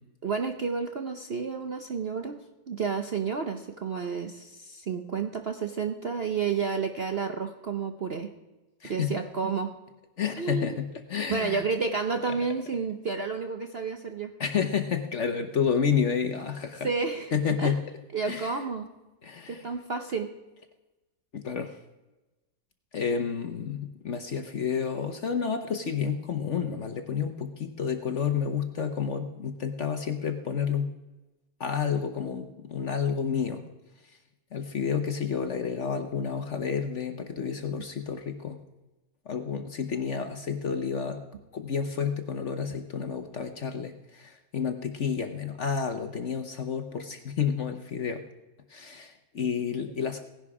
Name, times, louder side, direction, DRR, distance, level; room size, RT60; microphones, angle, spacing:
voice 1, 0.2-2.4 2.7-8.3 8.8-9.7 10.4-10.8 11.3-14.3 16.8-17.3 17.6-17.7 18.1-18.9 19.5-20.3, right 5 dB, 50° right, 6 dB, 0.8 m, -30 dB
voice 2, 8.8-9.1 10.2-11.6 14.4-16.9 17.3-17.8 18.2-18.6 19.2-19.7 21.3-21.7 22.9-30.9 31.6-33.6 34.5-38.6 39.3-41.2 41.5-48.2 48.7-50.2, left 6 dB, 50° left, 8 dB, 1.0 m, -30 dB
17.0 x 11.0 x 4.8 m, 1.1 s
omnidirectional pair, 1.9 m